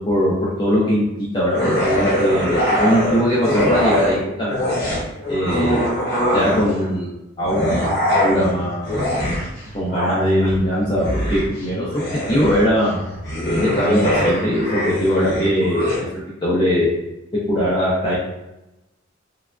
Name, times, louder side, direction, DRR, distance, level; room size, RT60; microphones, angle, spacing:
voice 1, 0.0-4.6 5.3-5.8 6.3-7.1 7.4-9.0 9.7-11.9 12.3-13.0 13.5-16.0 16.4-16.9 17.5-18.1, equal, 25° left, -8 dB, 0.6 m, -20 dB
sound 1, 1.5-4.2 4.5-6.9 7.4-16.0, equal, 55° left, 1.0 m, -22 dB
3.3 x 2.3 x 2.4 m, 0.92 s
head